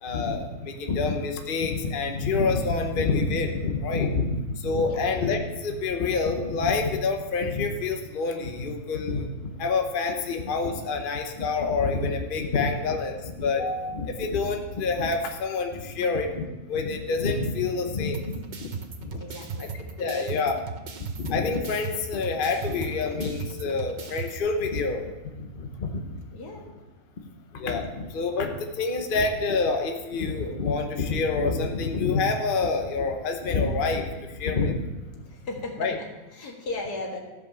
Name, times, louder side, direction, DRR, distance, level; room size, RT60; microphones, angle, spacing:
voice 1, 0.0-9.3 9.6-18.7 19.0-19.2 20.0-20.5 21.2-25.0 25.4-25.9 27.5-34.8 35.8-36.0, left 4 dB, 40° left, 4 dB, 1.0 m, -27 dB
sound 1, 18.1-24.4, right 4 dB, 40° right, 0.7 m, -37 dB
voice 2, 19.2-19.7 20.0-20.4 26.3-26.7 35.3-37.2, left 2 dB, 85° left, 0 dB, 2.3 m, -36 dB
14.5 x 5.3 x 6.9 m, 1.2 s
omnidirectional pair, 1.7 m